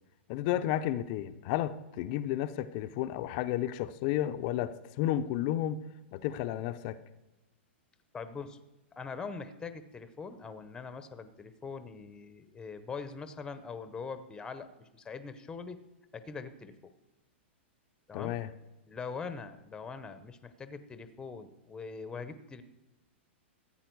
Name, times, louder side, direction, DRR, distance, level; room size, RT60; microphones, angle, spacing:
voice 1, 0.3-5.8 6.1-7.0 18.1-18.5, left 12 dB, 45° left, 11 dB, 0.6 m, -32 dB
voice 2, 8.1-8.6 9.0-15.8 16.1-16.9 18.1-18.4 18.9-22.6, left 5 dB, 10° left, 11 dB, 0.8 m, -42 dB
14.5 x 8.8 x 4.6 m, 1.0 s
hypercardioid pair, 135°, 6 cm